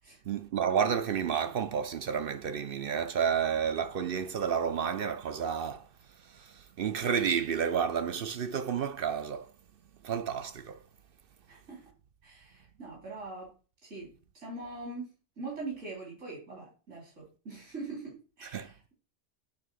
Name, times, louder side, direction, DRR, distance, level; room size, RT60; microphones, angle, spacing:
voice 1, 0.3-5.9 6.2-9.5 10.0-10.8 18.5-18.7, right 7 dB, 55° right, 0.7 m, -31 dB
voice 2, 11.5-11.9 12.2-13.5 13.8-15.1 15.4-18.9, right 3 dB, 85° right, 4.2 m, -42 dB
8.7 x 3.7 x 6.3 m
omnidirectional pair, 1.2 m